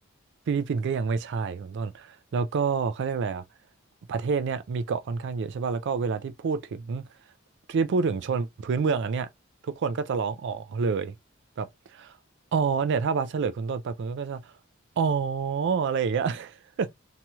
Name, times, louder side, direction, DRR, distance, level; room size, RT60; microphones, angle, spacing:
voice 1, 0.5-3.4 4.1-7.0 7.7-9.3 9.6-11.1 11.6-12.1 12.5-14.5 15.0-16.9, right 5 dB, 55° right, 0.3 m, -28 dB
3.0 x 2.8 x 2.3 m
head